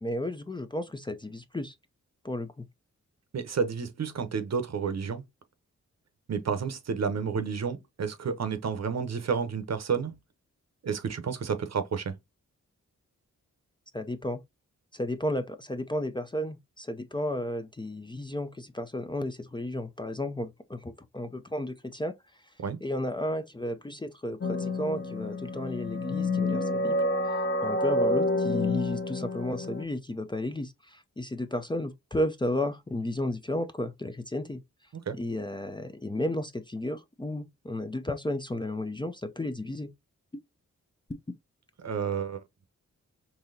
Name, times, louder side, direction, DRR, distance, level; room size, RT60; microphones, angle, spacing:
voice 1, 0.0-1.7 2.2-2.6 13.9-14.4 14.9-22.1 22.8-27.0 27.6-34.6 35.1-39.9 41.1-41.2, left 1 dB, 15° left, 0.4 m, -33 dB
voice 2, 3.3-5.2 6.3-10.1 10.8-12.1 22.6-22.8 35.1-35.2 41.8-42.4, right 6 dB, 60° right, 0.8 m, -30 dB
sound 1, 24.4-29.8, left 2 dB, 40° left, 0.8 m, -28 dB
4.0 x 2.8 x 2.6 m
cardioid pair, 60°, 31 cm